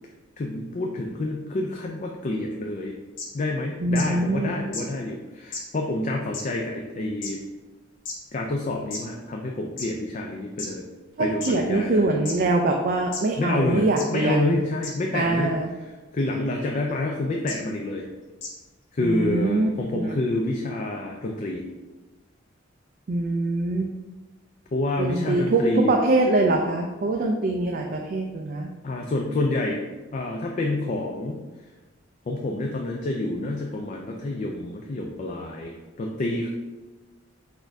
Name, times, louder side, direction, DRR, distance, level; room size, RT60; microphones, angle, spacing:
voice 1, 0.4-2.9 3.3-7.4 8.3-10.8 11.2-12.1 13.4-13.8 14.1-15.6 16.1-18.1 18.9-21.6 24.7-25.9 28.8-31.4 32.3-36.5, left 2 dB, 40° left, 1 dB, 0.4 m, -28 dB
sound 1, 3.2-3.3 3.9-4.0 4.7-4.8 5.5-5.6 6.3-6.4 7.2-7.3 8.1-8.2 8.9-9.0 9.8-9.9 10.6-10.7 11.4-11.5 12.3-12.4 13.1-13.2 14.0-14.1 14.8-14.9 16.2-16.3 17.5-17.6 18.4-18.5, left 4 dB, 70° left, 1.1 m, -32 dB
voice 2, 3.8-4.5 11.2-14.6 15.1-15.7 19.0-20.2 23.1-23.9 25.0-28.7, right 2 dB, 45° right, 2 dB, 0.4 m, -23 dB
4.1 x 2.6 x 4.5 m, 1.2 s
head